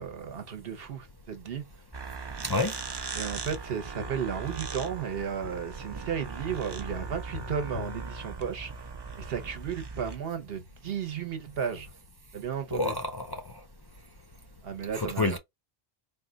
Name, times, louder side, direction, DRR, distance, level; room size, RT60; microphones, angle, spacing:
voice 1, 0.0-1.7 3.1-8.9 9.2-11.9 12.3-12.9 14.6-15.4, right 7 dB, 70° right, 1.1 m, -34 dB
sound 1, 1.9-10.2, right 5 dB, 35° right, 0.4 m, -39 dB
voice 2, 2.4-2.7 12.7-13.5 14.9-15.4, left 3 dB, 30° left, 0.4 m, -29 dB
Tap, 3.7-9.0 11.6-11.7, left 12 dB, 75° left, 0.8 m, -46 dB
4.2 x 2.3 x 3.8 m
omnidirectional pair, 1.0 m